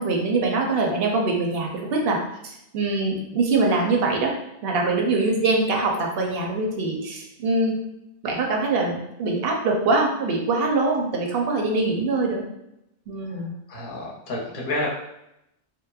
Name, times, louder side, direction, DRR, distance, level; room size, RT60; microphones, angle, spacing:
voice 1, 0.0-2.2 2.4-4.3 4.6-7.8 8.2-12.4 13.1-13.5, right 3 dB, 65° right, 1 dB, 0.7 m, -23 dB
voice 2, 13.2-14.9, left 2 dB, 55° left, -3 dB, 0.7 m, -31 dB
2.9 x 2.0 x 2.2 m, 0.84 s
omnidirectional pair, 1.2 m